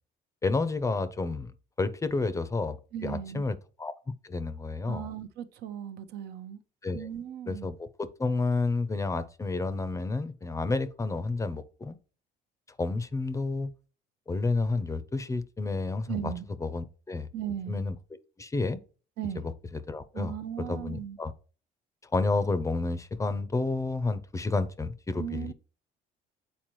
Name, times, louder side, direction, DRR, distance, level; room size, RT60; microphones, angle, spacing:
voice 1, 0.4-1.5 1.8-2.8 3.0-3.9 4.2-5.1 6.8-7.1 7.5-12.0 12.8-13.7 14.3-16.3 16.6-17.3 17.7-17.9 18.4-18.8 19.4-21.3 22.1-25.5, left 3 dB, 20° left, 0.5 m, -30 dB
voice 2, 2.9-3.4 4.9-6.6 6.9-7.7 16.1-16.4 17.3-17.8 19.2-19.4 20.1-21.2 25.2-25.5, right 10 dB, 75° right, 0.7 m, -37 dB
7.4 x 4.2 x 3.1 m
cardioid pair, 110°, 17 cm